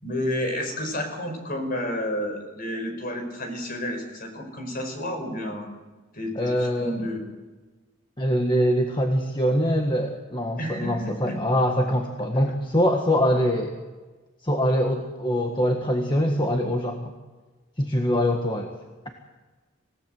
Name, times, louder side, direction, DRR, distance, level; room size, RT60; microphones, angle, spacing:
voice 1, 0.0-5.7 6.1-7.2 10.6-11.4, left 1 dB, 45° left, 5 dB, 5.4 m, -31 dB
voice 2, 6.3-6.9 8.2-13.8 14.4-17.0 17.8-18.7, equal, 20° left, 3 dB, 1.6 m, -23 dB
27.0 x 17.5 x 7.9 m, 1.3 s
head